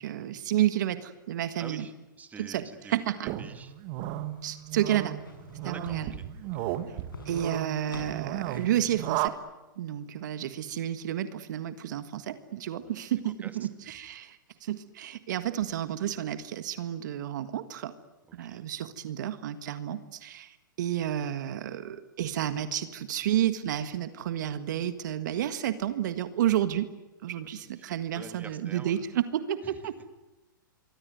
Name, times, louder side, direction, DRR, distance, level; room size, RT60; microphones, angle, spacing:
voice 1, 0.0-1.8 2.4-3.3 4.4-5.2 5.6-6.1 7.2-9.4 9.8-17.9 18.3-26.9 27.2-30.0, right 11 dB, 60° right, 11 dB, 1.7 m, -31 dB
voice 2, 1.6-3.7 5.6-6.3 6.5-6.7 12.8-12.9 13.4-14.0 14.5-14.6 18.3-18.7 27.3-29.2 29.6-30.1, right 5 dB, 15° right, 8 dB, 2.4 m, -48 dB
sound 1, 3.2-9.3, right 14 dB, 40° right, 2.0 m, -35 dB
sound 2, 3.7-8.8 9.1-9.2, left 3 dB, 85° left, 7.6 m, -48 dB
26.0 x 23.5 x 9.4 m, 1.0 s
hypercardioid pair, 115°, 11 cm